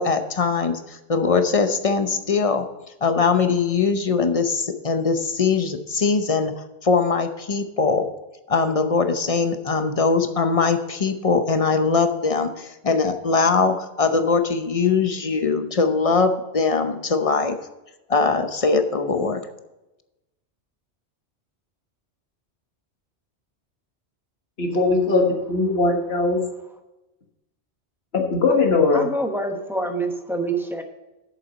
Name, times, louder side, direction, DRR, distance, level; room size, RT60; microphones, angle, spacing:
voice 1, 0.0-2.7 3.0-6.5 6.8-8.1 8.5-17.6 18.1-19.4, left 4 dB, 35° left, 8 dB, 0.8 m, -21 dB
voice 2, 24.6-25.2 25.5-26.4 28.1-29.1, left 3 dB, 65° left, 2 dB, 1.6 m, -20 dB
voice 3, 28.9-30.8, right 2 dB, ahead, 4 dB, 0.9 m, -26 dB
8.2 x 7.4 x 5.0 m, 0.99 s
omnidirectional pair, 1.1 m